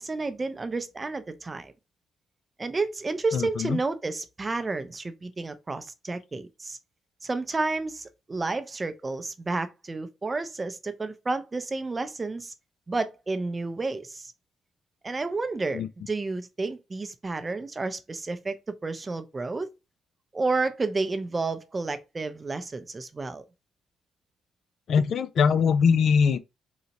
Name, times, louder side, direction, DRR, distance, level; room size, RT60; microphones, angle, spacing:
voice 1, 0.0-1.7 2.6-6.8 7.2-12.5 12.9-14.3 15.0-19.7 20.3-23.4, right 3 dB, 25° right, 0.5 m, -31 dB
voice 2, 3.3-3.8 15.7-15.9 24.9-26.4, left 6 dB, 60° left, 0.3 m, -22 dB
3.8 x 2.0 x 2.8 m
cardioid pair, 90°, 0 cm